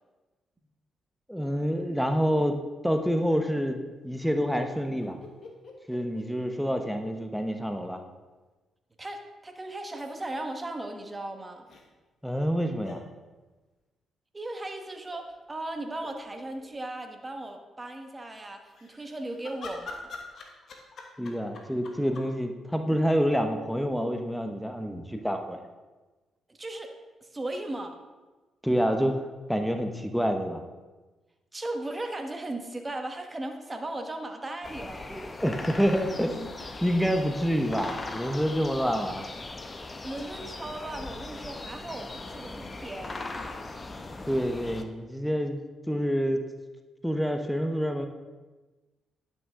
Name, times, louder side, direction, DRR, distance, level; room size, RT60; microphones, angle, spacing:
voice 1, 1.3-5.2 5.9-8.0 12.2-13.0 21.2-25.6 28.6-30.6 35.1-36.5 36.8-39.3 44.3-46.4 47.0-48.1, equal, ahead, 5 dB, 0.9 m, -27 dB
sound 1, 5.0-7.2 7.5-7.6 9.7-10.4 11.7-11.8 12.8-13.0 14.8-15.2 15.7-15.8 16.0-16.7 18.6-22.3, left 3 dB, 60° left, 1.3 m, -45 dB
voice 2, 9.0-11.6 14.3-20.1 26.5-26.9 27.2-28.0 31.5-35.1 39.9-43.3, right 1 dB, 25° right, 5 dB, 1.3 m, -37 dB
sound 2, 34.6-44.8, left 2 dB, 35° left, 0.8 m, -39 dB
10.5 x 6.2 x 3.7 m, 1.2 s
supercardioid pair, 50°, 0 cm